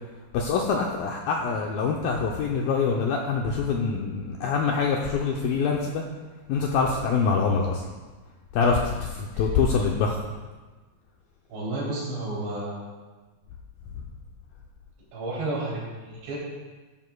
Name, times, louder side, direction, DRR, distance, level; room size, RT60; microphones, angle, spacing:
voice 1, 0.3-6.0 6.5-7.8 8.5-10.2, left 5 dB, 90° left, 0 dB, 2.1 m, -25 dB
voice 2, 11.5-12.9 15.1-16.4, right 2 dB, 70° right, -6 dB, 5.4 m, -31 dB
13.5 x 11.0 x 2.3 m, 1.3 s
omnidirectional pair, 5.0 m